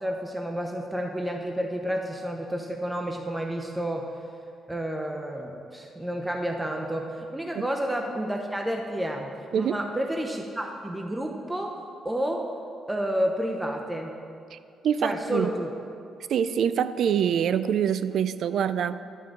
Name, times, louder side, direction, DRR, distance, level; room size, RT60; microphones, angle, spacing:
voice 1, 0.0-4.0 4.7-11.7 12.0-12.4 12.9-14.1 15.0-15.7, equal, 10° right, 2 dB, 0.8 m, -30 dB
voice 2, 14.8-15.5 16.3-19.0, right 8 dB, 70° right, 14 dB, 0.4 m, -25 dB
11.0 x 5.5 x 7.6 m, 2.5 s
cardioid pair, 90°, 0 cm